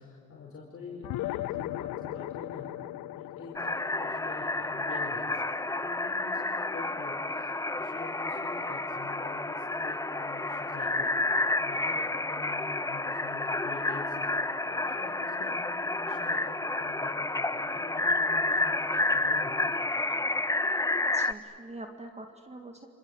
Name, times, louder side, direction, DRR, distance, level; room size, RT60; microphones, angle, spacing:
voice 1, 0.0-2.7 3.1-6.5 6.7-7.5 7.8-11.1 11.5-14.3 14.7-15.6 15.9-19.7, left 4 dB, 45° left, -3 dB, 4.9 m, -45 dB
sound 1, 1.0-5.9, left 16 dB, 85° left, 0.6 m, -38 dB
sound 2, 3.6-21.3, left 2 dB, 10° left, 0.8 m, -30 dB
voice 2, 21.1-22.9, right 2 dB, 20° right, 5 dB, 1.9 m, -44 dB
28.5 x 26.0 x 8.1 m, 2.5 s
cardioid pair, 90°, 30 cm